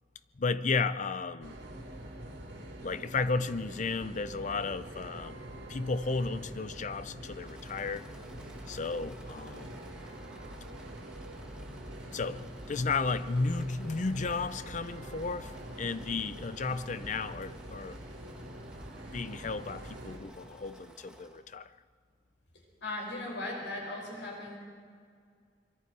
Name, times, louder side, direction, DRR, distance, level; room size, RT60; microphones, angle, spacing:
voice 1, 0.4-1.5 2.8-5.4 5.7-8.1 8.7-9.8 12.1-15.5 15.8-18.0 19.1-21.7, left 4 dB, 45° left, 13 dB, 0.6 m, -33 dB
sound 1, 1.4-20.2, right 1 dB, 75° right, 5.0 m, -45 dB
Engine / Mechanisms, 7.2-21.5, right 1 dB, 5° right, 1.7 m, -56 dB
voice 2, 22.8-24.6, left 2 dB, 85° left, -1 dB, 6.3 m, -37 dB
24.5 x 23.5 x 4.7 m, 2.1 s
head